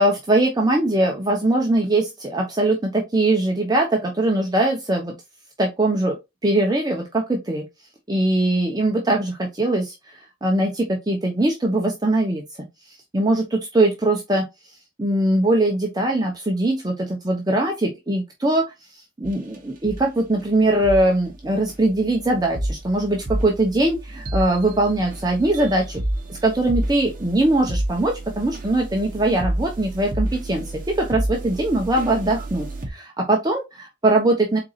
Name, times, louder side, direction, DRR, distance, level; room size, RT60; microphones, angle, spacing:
voice 1, 0.0-5.1 5.6-6.2 6.4-7.6 8.1-12.4 13.1-14.4 15.0-18.7 19.2-26.0 26.3-30.6 31.0-34.6, right 2 dB, 20° right, 0.7 m, -21 dB
sound 1, 19.2-19.6 19.8-20.0 20.8-21.0 21.7-32.9, right 1 dB, 45° right, 0.9 m, -30 dB
4.6 x 3.8 x 2.4 m
head